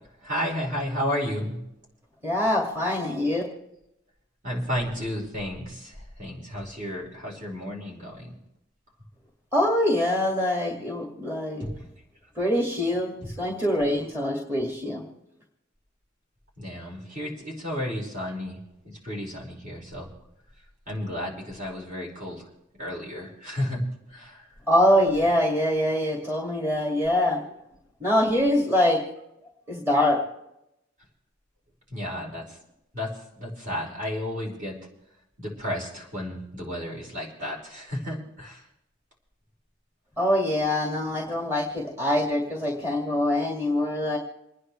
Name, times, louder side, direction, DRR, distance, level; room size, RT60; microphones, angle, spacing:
voice 1, 0.2-1.5 4.4-8.4 11.6-11.7 16.6-20.1 20.9-22.4 22.8-23.8 24.1-24.4 31.9-32.6 32.9-33.1 33.4-34.8 35.4-38.6, left 1 dB, 40° right, -2 dB, 4.9 m, -32 dB
voice 2, 2.2-3.4 9.5-11.7 12.4-15.0 24.7-27.4 28.0-29.0 29.7-30.2 40.2-44.2, left 1 dB, 15° right, -2 dB, 2.3 m, -24 dB
28.5 x 10.0 x 3.3 m, 0.85 s
head